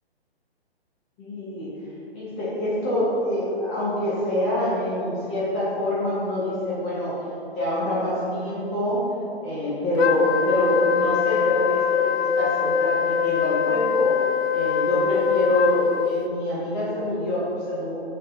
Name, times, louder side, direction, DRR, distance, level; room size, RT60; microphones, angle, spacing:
voice 1, 1.2-1.7 2.1-7.2 7.5-9.1 9.4-14.1 14.5-18.0, left 1 dB, 25° left, -8 dB, 1.8 m, -26 dB
Wind instrument woodwind instrument, 10.0-16.3, left 7 dB, 75° left, 0.5 m, -23 dB
7.3 x 6.2 x 4.2 m, 2.9 s
hypercardioid pair, 145°, 32 cm